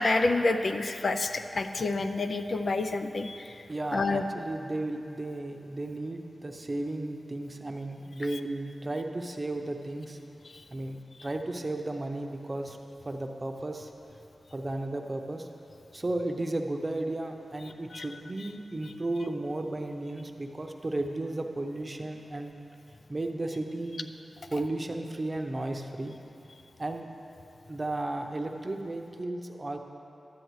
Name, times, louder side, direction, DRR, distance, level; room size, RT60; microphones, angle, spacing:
voice 1, 0.0-3.4 3.9-4.2 17.9-18.1, left 3 dB, 60° left, 7 dB, 0.4 m, -28 dB
voice 2, 3.7-10.2 10.7-12.8 13.0-13.9 14.5-15.5 15.9-22.5 23.1-24.1 24.5-26.1 26.8-27.1 27.7-29.8, right 2 dB, 30° right, 4 dB, 0.7 m, -34 dB
12.0 x 9.2 x 3.1 m, 2.8 s
wide cardioid pair, 70°, 0 cm